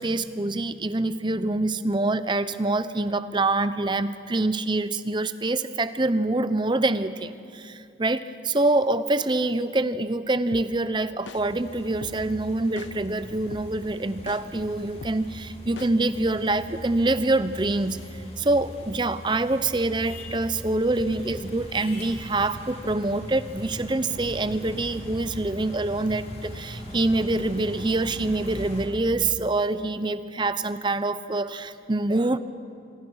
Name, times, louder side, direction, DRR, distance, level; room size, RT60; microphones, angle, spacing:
voice 1, 0.0-18.0 18.4-32.4, right 2 dB, 25° right, 13 dB, 0.7 m, -25 dB
sound 1, 10.5-10.6 11.3-11.4 12.0-12.1 12.8-12.9 13.5-13.6 14.3-14.4 15.0-15.1 15.8-15.9, left 3 dB, 85° left, 1.0 m, -39 dB
sound 2, 11.3-28.9, equal, 35° left, 3.3 m, -40 dB
26.5 x 23.0 x 6.4 m, 2.5 s
head